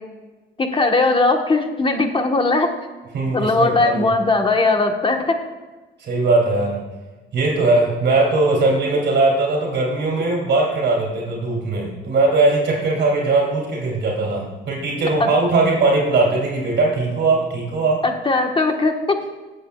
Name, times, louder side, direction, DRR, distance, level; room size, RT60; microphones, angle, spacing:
voice 1, 0.6-2.7 3.3-5.4 15.2-15.3 18.0-19.2, left 3 dB, 25° left, 4 dB, 1.2 m, -19 dB
voice 2, 3.1-4.1 6.0-6.8 7.3-18.0, right 3 dB, 60° right, -2 dB, 2.9 m, -19 dB
18.5 x 7.8 x 2.3 m, 1.3 s
cardioid pair, 90°, 20 cm